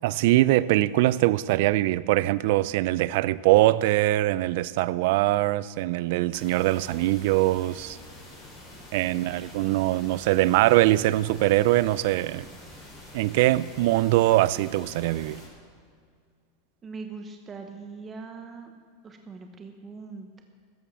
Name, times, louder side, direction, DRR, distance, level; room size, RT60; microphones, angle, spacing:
voice 1, 0.0-8.0 8.9-12.5 13.1-15.4, right 16 dB, 60° right, 0.4 m, -22 dB
sound 1, 6.3-15.5, left 1 dB, 15° left, 5.0 m, -46 dB
voice 2, 9.0-9.5 16.8-18.8 19.0-20.4, right 4 dB, 20° right, 1.0 m, -41 dB
13.5 x 11.0 x 7.5 m
supercardioid pair, 155°, 0 cm